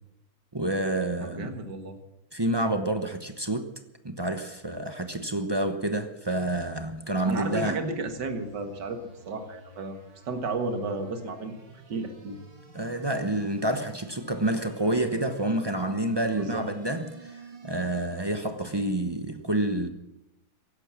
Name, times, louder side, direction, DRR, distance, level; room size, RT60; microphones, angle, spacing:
voice 1, 0.5-1.5 2.3-3.7 4.0-7.8 12.7-19.9, right 1 dB, 35° right, 0.4 m, -28 dB
voice 2, 1.2-2.0 7.3-9.0 9.3-10.0 10.3-11.6 11.9-12.4 16.3-16.7, right 3 dB, 55° right, 2.3 m, -33 dB
sound 1, 6.8-18.5, right 3 dB, 70° right, 3.4 m, -51 dB
16.0 x 11.5 x 7.3 m
omnidirectional pair, 2.3 m